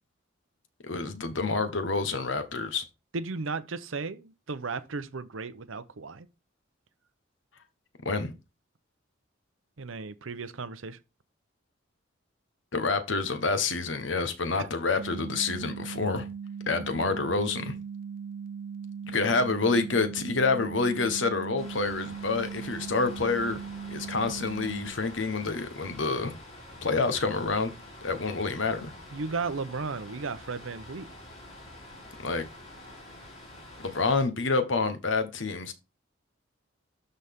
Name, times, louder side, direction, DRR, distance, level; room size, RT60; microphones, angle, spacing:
voice 1, 0.8-2.8 8.0-8.3 12.7-16.3 16.7-17.8 19.1-23.6 23.9-26.4 26.8-27.7 28.0-28.9 32.2-32.4 33.8-35.7, left 3 dB, 70° left, 1.2 m, -28 dB
voice 2, 3.1-6.3 9.8-11.0 14.6-14.7 29.1-31.1, right 4 dB, 85° right, 0.8 m, -35 dB
sound 1, 15.0-24.9, right 6 dB, 45° right, 0.4 m, -39 dB
sound 2, 21.6-34.3, left 1 dB, 30° left, 3.4 m, -47 dB
12.0 x 4.1 x 3.6 m
head